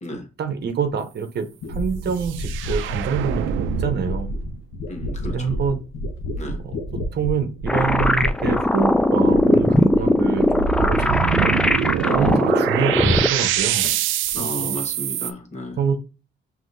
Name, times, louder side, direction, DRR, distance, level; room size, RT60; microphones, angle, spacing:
voice 1, 0.4-4.3 5.2-5.8 6.6-6.7 7.1-11.5 12.1-13.9 14.4-14.8 15.8-16.0, right 6 dB, 55° right, 0.8 m, -26 dB
sound 1, 0.9-1.0 1.6-11.3 11.6-12.4 12.7-13.6 13.8-14.4, equal, 80° left, 0.8 m, -31 dB
sound 2, 2.2-4.5 10.3-15.3, right 10 dB, 85° right, 0.4 m, -25 dB
voice 2, 4.9-5.6 6.4-6.6 10.0-10.4 11.0-11.3 12.0-12.7 14.3-15.8, left 1 dB, 35° left, 1.2 m, -33 dB
sound 3, 7.7-13.3, left 1 dB, 5° left, 0.3 m, -19 dB
5.7 x 2.8 x 2.6 m
cardioid pair, 90°, 20 cm